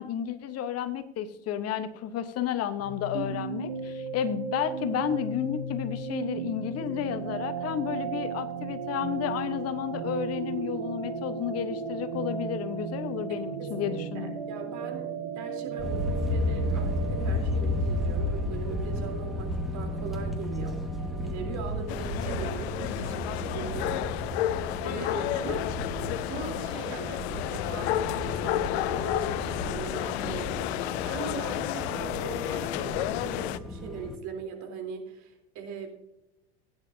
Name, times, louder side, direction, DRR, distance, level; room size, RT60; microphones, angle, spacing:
voice 1, 0.0-14.3, left 9 dB, 45° left, 11 dB, 1.1 m, -32 dB
sound 1, 2.8-22.3, right 5 dB, 75° right, 1.8 m, -36 dB
voice 2, 3.1-3.5 13.6-20.8 21.2-25.8 26.1-36.0, right 5 dB, 55° right, 3 dB, 3.6 m, -40 dB
sound 2, 15.8-34.2, left 1 dB, ahead, 1.9 m, -33 dB
sound 3, 21.9-33.6, left 14 dB, 70° left, 0.6 m, -31 dB
16.0 x 9.9 x 2.8 m, 0.88 s
hypercardioid pair, 80°, 34 cm